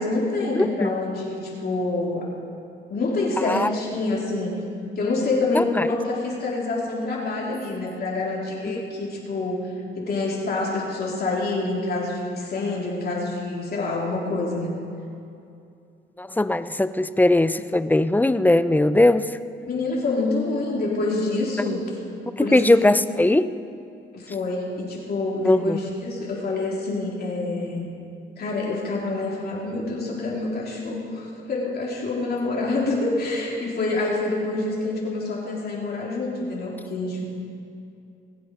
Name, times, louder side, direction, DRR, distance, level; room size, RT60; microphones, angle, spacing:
voice 1, 0.0-2.3 2.9-4.6 4.9-14.7 19.6-21.9 22.4-22.8 24.1-27.9 28.4-37.2, left 2 dB, 50° left, -4 dB, 3.5 m, -27 dB
voice 2, 0.6-0.9 3.5-3.7 5.5-5.9 16.2-19.2 22.4-23.5 25.4-25.8, left 1 dB, 10° left, 13 dB, 0.5 m, -19 dB
20.5 x 8.1 x 5.5 m, 2.5 s
cardioid pair, 90°, 20 cm